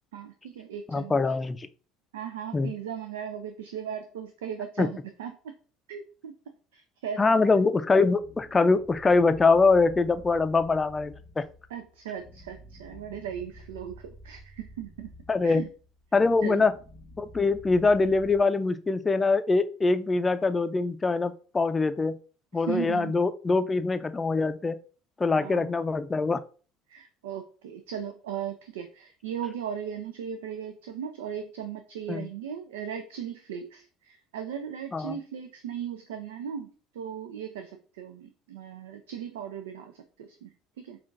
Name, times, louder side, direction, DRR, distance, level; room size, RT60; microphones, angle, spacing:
voice 1, 0.1-1.2 2.1-5.3 5.9-6.3 6.7-7.6 11.7-15.1 15.4-15.7 16.4-16.7 22.6-23.1 25.4-25.7 26.9-41.0, right 8 dB, 85° right, 7 dB, 0.4 m, -37 dB
voice 2, 0.9-1.7 2.5-2.7 4.8-4.9 7.2-11.4 15.3-15.6 16.1-16.7 17.2-22.2 22.5-24.8 25.2-26.4 32.1-32.3 34.9-35.2, left 3 dB, 20° left, 11 dB, 0.4 m, -23 dB
sound 1, 8.1-18.4, equal, 10° right, 1.1 m, -50 dB
5.6 x 2.4 x 2.5 m, 0.38 s
hypercardioid pair, 80°, 0 cm